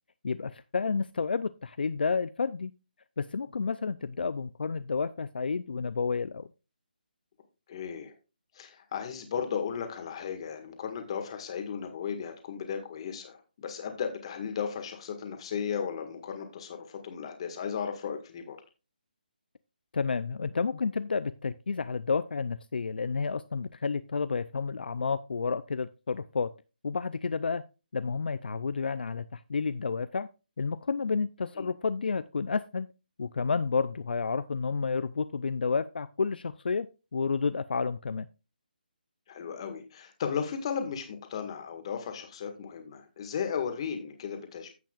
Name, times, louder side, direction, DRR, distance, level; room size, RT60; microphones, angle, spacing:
voice 1, 0.2-2.7 3.2-6.5 19.9-26.5 26.8-27.6 27.9-30.3 30.6-32.9 33.2-36.9 37.1-38.3, left 5 dB, 75° left, 14 dB, 0.5 m, -30 dB
voice 2, 7.7-8.1 8.6-18.6 31.6-31.7 39.3-44.7, left 7 dB, 35° left, 6 dB, 1.7 m, -35 dB
15.0 x 5.8 x 2.4 m, 0.30 s
hypercardioid pair, 165°, 5 cm